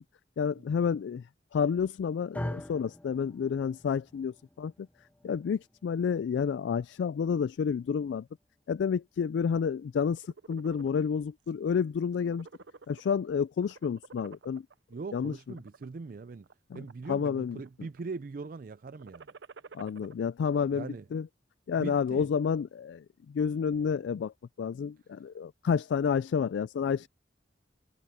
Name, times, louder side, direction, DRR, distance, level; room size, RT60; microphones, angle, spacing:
voice 1, 0.4-1.3 1.5-4.9 5.2-8.3 8.7-12.5 12.9-14.7 15.1-15.3 16.7-16.8 17.1-17.6 19.7-21.3 21.7-24.3 24.6-27.1, left 6 dB, 75° left, 0.3 m, -30 dB
sound 1, 2.3-10.6, left 1 dB, 10° left, 0.6 m, -45 dB
sound 2, 10.0-11.0 11.5-11.7 12.0-13.3 13.6-14.7 15.4-15.8 16.4-17.2 17.5-18.0 18.9-20.1, right 4 dB, 75° right, 0.7 m, -50 dB
voice 2, 14.9-16.5 16.7-19.4 20.7-21.1 21.8-22.3, right 4 dB, 50° right, 0.4 m, -41 dB
head